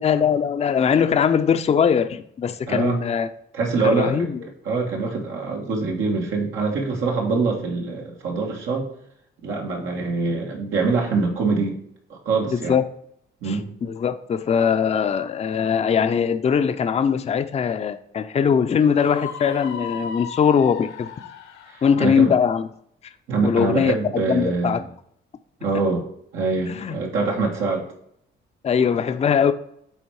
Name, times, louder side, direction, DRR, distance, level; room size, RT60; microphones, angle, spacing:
voice 1, 0.0-3.3 3.8-4.4 12.5-12.8 13.4-21.1 21.8-22.7 23.4-24.8 26.7-27.0 28.6-29.5, left 7 dB, 35° left, 9 dB, 0.5 m, -21 dB
voice 2, 2.7-3.0 3.5-4.3 4.6-8.9 9.4-11.8 12.1-12.7 13.4-13.7 21.7-22.3 23.3-24.8 25.6-26.1 26.3-27.8, right 4 dB, 85° right, -1 dB, 1.6 m, -24 dB
Screaming, 18.9-21.9, left 7 dB, 90° left, 1.2 m, -36 dB
9.0 x 3.6 x 4.7 m, 0.70 s
cardioid pair, 90°, 20 cm